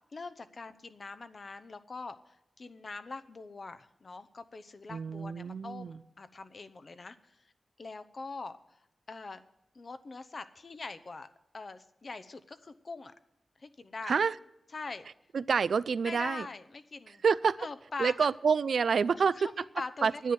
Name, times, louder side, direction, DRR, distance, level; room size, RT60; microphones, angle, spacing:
voice 1, 0.1-7.4 7.8-8.8 9.1-9.4 9.7-11.3 11.5-13.1 13.6-14.2 14.7-15.1 16.0-17.2 17.6-18.3 19.1-20.3, left 3 dB, 50° left, 11 dB, 0.9 m, -43 dB
voice 2, 4.9-6.0 14.1-14.3 15.3-16.5 17.2-17.6 18.0-19.5 20.0-20.3, right 5 dB, 80° right, 17 dB, 0.4 m, -27 dB
10.0 x 9.4 x 8.0 m, 0.84 s
wide cardioid pair, 75°, 0 cm